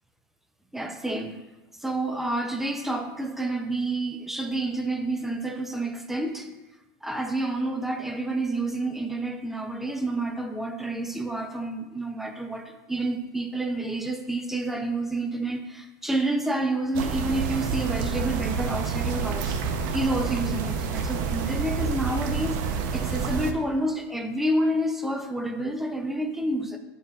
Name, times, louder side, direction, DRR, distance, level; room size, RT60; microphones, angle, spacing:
voice 1, 0.7-1.4 1.8-6.5 7.0-19.5 19.9-22.6 22.9-26.8, right 1 dB, 5° right, 5 dB, 0.5 m, -29 dB
sound 1, 16.9-23.5, right 5 dB, 65° right, 0.7 m, -28 dB
11.5 x 4.4 x 2.4 m, 1.1 s
supercardioid pair, 145°, 11 cm